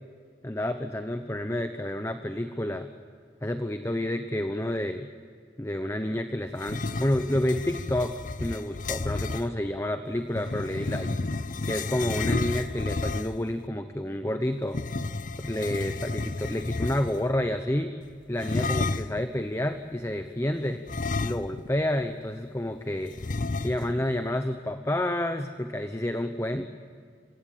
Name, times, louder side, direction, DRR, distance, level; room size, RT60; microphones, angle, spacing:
voice 1, 0.4-2.9 3.4-5.1 5.6-11.1 11.7-14.8 15.4-17.9 18.3-20.8 21.2-26.7, left 1 dB, 15° left, 7 dB, 0.9 m, -29 dB
sound 1, 6.6-9.5 10.3-13.5 14.7-17.3 18.4-19.2 20.9-21.8 22.1-22.2 23.2-24.0, left 3 dB, 45° left, 0.7 m, -31 dB
30.0 x 17.0 x 8.5 m, 2.2 s
head